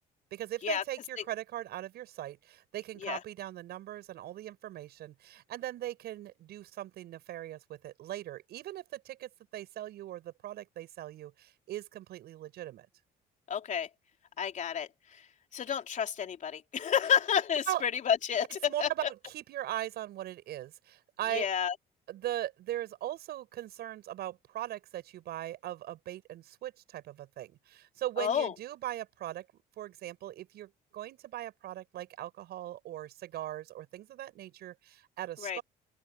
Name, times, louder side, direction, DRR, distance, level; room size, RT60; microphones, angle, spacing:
voice 1, 0.3-12.9 17.7-17.8 18.7-21.5 22.1-29.5 29.8-35.6, right 13 dB, 70° right, 7.7 m, -39 dB
voice 2, 13.5-13.9 14.4-15.2 15.5-18.9 21.3-21.7 28.2-28.5 35.4-35.6, left 8 dB, 45° left, 3.5 m, -30 dB
open air
cardioid pair, 110°, 17 cm